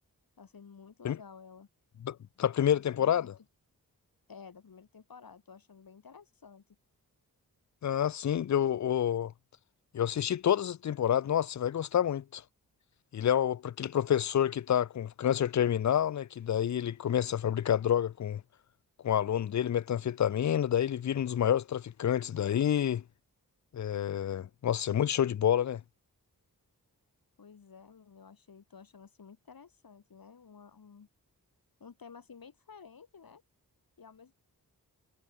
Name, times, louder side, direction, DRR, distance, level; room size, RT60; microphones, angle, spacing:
voice 1, 0.4-1.7 2.6-3.3 4.3-6.6 27.4-31.1 31.8-33.4 34.0-34.4, left 6 dB, 65° left, 2.9 m, -52 dB
voice 2, 2.0-3.3 7.8-9.3 9.9-12.4 13.1-18.4 19.0-23.0 23.7-25.8, left 10 dB, 50° left, 0.5 m, -28 dB
cardioid pair, 45°, 37 cm